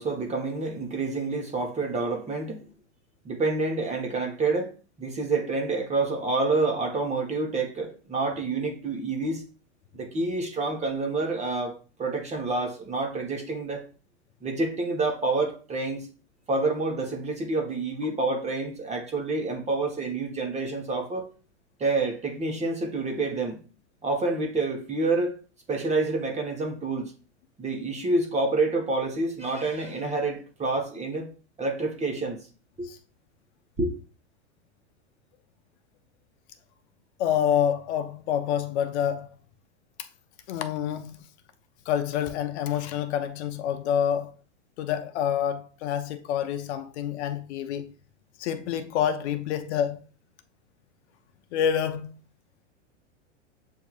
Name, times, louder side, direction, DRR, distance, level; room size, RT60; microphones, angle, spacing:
voice 1, 0.0-2.7 3.2-9.4 9.9-11.7 12.0-13.8 14.4-16.1 16.5-21.3 21.8-23.6 24.0-25.4 25.7-27.1 27.6-31.3 31.6-32.5 32.8-32.9 33.8-33.9, right 3 dB, 20° right, 1.1 m, -28 dB
voice 2, 37.2-39.3 40.0-40.1 40.5-41.2 41.9-44.3 44.8-47.9 48.4-50.0 51.5-52.1, left 9 dB, 60° left, 0.7 m, -27 dB
7.7 x 2.7 x 2.4 m
hypercardioid pair, 120°, 37 cm